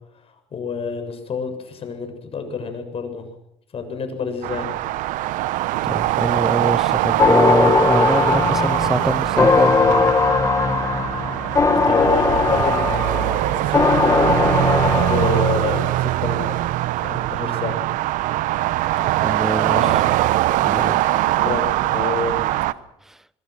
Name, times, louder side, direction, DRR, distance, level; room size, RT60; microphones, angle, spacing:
voice 1, 0.2-3.3 3.7-4.7 11.9-16.7 17.0-17.8 19.7-20.1 21.3-22.5, left 4 dB, 45° left, 7.3 m, -28 dB
sound 1, 4.4-22.7, right 16 dB, 70° right, 1.1 m, -22 dB
voice 2, 5.8-10.1 19.0-20.0 20.6-21.0 23.1-23.2, right 1 dB, 5° right, 0.9 m, -25 dB
sound 2, 7.2-15.9, left 4 dB, 25° left, 1.7 m, -19 dB
26.5 x 21.5 x 6.3 m
supercardioid pair, 80°, 14 cm